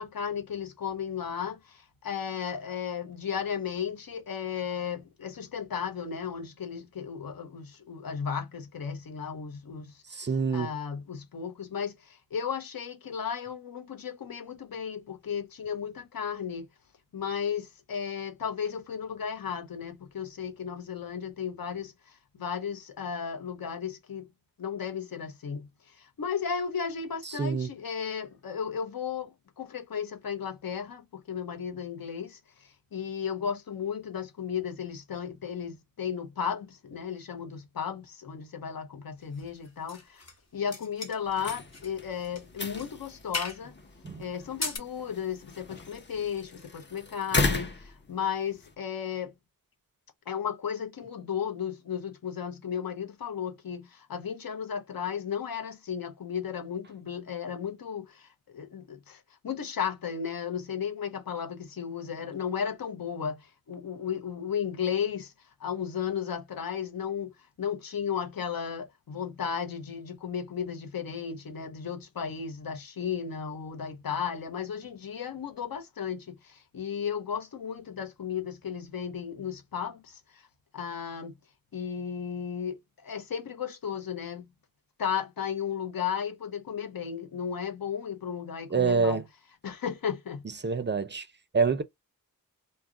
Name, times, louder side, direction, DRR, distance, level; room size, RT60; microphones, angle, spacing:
voice 1, 0.0-10.3 10.5-16.7 17.1-24.3 24.6-40.2 40.5-43.8 44.2-49.3 50.3-65.3 65.6-80.4 80.7-81.3 81.7-84.5 85.0-89.2 89.6-90.4, left 7 dB, 80° left, 0.7 m, -34 dB
voice 2, 10.1-10.7 27.3-27.7 44.0-44.2 88.7-89.2 90.6-91.3 91.5-91.8, right 5 dB, 30° right, 0.4 m, -26 dB
sound 1, 39.3-40.4 40.7-41.9 42.2-42.4 42.7-42.9 43.3-43.6 44.4-44.8, left 3 dB, 50° left, 1.0 m, -37 dB
sound 2, 41.2-48.7, left 3 dB, 30° left, 0.6 m, -35 dB
2.3 x 2.0 x 3.6 m
wide cardioid pair, 55°, 35 cm